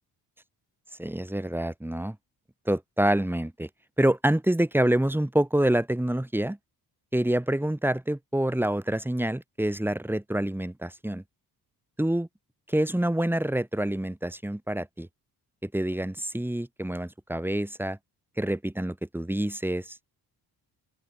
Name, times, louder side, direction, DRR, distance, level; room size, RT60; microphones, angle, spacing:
voice 1, 1.0-2.2 2.7-3.7 4.0-6.6 7.1-11.2 12.0-12.3 12.7-15.1 15.6-18.0 18.4-20.0, right 1 dB, 5° right, 4.4 m, -27 dB
open air
wide cardioid pair, 175°, 39 cm